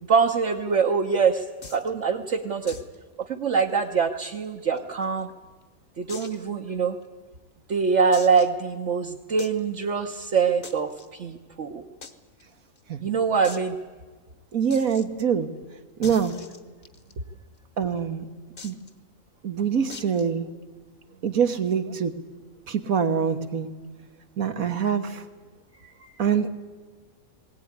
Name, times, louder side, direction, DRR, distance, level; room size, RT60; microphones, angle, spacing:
voice 1, 0.1-1.4 1.7-2.8 3.2-5.3 6.0-7.0 7.7-11.8 13.0-13.8 26.0-26.1, right 5 dB, 60° right, 1 dB, 1.4 m, -24 dB
sound 1, 1.6-1.9 2.7-2.9 3.2-3.3 3.7-3.8 4.4-5.2 6.1-6.5 7.0-7.1 8.1-8.6 9.4-9.6 10.6-11.1 12.0-12.1 12.4-12.5 12.8-12.9 13.4-13.7 14.7-15.1 16.0-17.1 18.6-18.9 19.9-20.3, left 4 dB, 40° left, 1.4 m, -42 dB
voice 2, 14.5-15.5 16.0-16.4 17.8-18.3 18.6-18.8 19.4-20.5 21.2-22.1 22.7-23.7 24.4-25.2 26.2-26.5, right 7 dB, 80° right, 8 dB, 1.8 m, -24 dB
20.0 x 18.0 x 9.7 m, 1.3 s
omnidirectional pair, 1.5 m